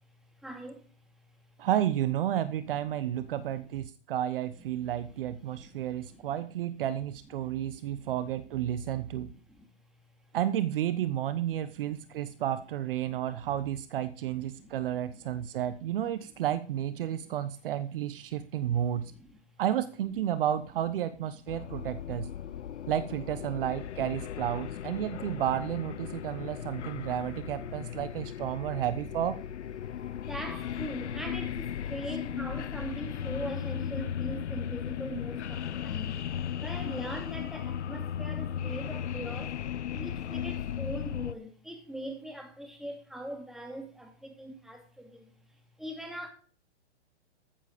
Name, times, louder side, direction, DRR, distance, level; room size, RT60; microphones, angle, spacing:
voice 1, 0.4-0.8 3.2-3.8 5.0-5.1 5.6-6.4 7.4-8.1 8.8-9.7 11.6-12.3 13.1-13.4 14.3-14.8 15.1-15.5 17.0-17.5 18.3-18.5 19.0-19.4 21.6-22.6 25.3-25.5 26.1-26.2 26.6-26.7 27.0-27.1 27.7-27.9 29.9-39.6 39.9-45.3 45.8-46.3, right 1 dB, ahead, 2.5 m, -43 dB
voice 2, 1.6-9.3 10.3-19.1 19.6-22.3 22.9-29.4, right 11 dB, 50° right, 1.1 m, -31 dB
sound 1, 21.5-41.3, left 9 dB, 80° left, 0.8 m, -36 dB
14.5 x 7.5 x 5.1 m
hypercardioid pair, 135°, 34 cm